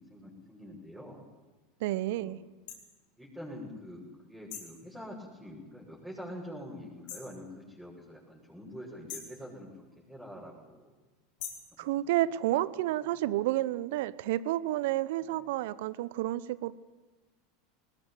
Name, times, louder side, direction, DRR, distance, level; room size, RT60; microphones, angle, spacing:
voice 1, 0.1-1.2 2.1-2.3 3.2-10.9 11.7-12.1 12.4-12.6 15.2-15.4, equal, 5° right, -6 dB, 6.7 m, -46 dB
voice 2, 1.8-2.4 11.8-16.7, right 15 dB, 65° right, 18 dB, 0.9 m, -30 dB
sound 1, 2.7-2.8 4.5-4.8 7.1-7.4 9.1-9.4 11.4-11.7, left 8 dB, 60° left, 4.9 m, -42 dB
20.0 x 19.5 x 9.2 m, 1.2 s
hypercardioid pair, 85°, 0 cm